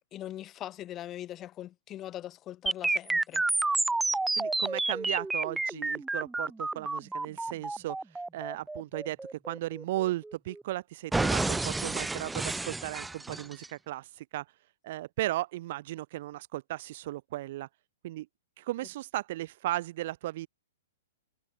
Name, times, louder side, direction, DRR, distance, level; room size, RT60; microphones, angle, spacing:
voice 1, 0.1-3.4, left 13 dB, 25° left, 5.2 m, -41 dB
sound 1, 2.7-10.6 11.1-13.7, right 2 dB, 5° right, 0.4 m, -30 dB
voice 2, 4.4-8.0 8.3-9.2 9.5-14.4 14.8-17.7 18.0-18.3 18.6-20.5, right 16 dB, 55° right, 0.6 m, -35 dB
hypercardioid pair, 135°, 0 cm